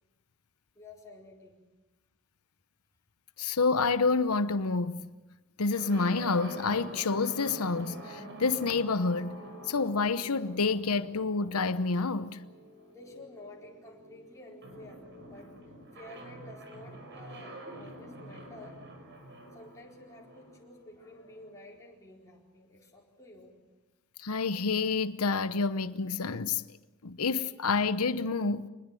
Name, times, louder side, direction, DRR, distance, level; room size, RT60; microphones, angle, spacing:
voice 1, 0.7-1.6 12.9-18.8 19.5-23.6, left 2 dB, 15° left, 4.5 m, -51 dB
voice 2, 3.4-5.0 5.6-9.4 9.7-12.4 24.2-26.6 27.0-28.7, left 4 dB, 85° left, 0.9 m, -28 dB
sound 1, 5.7-21.5, right 1 dB, 55° right, 5.5 m, -47 dB
25.5 x 20.5 x 7.7 m
head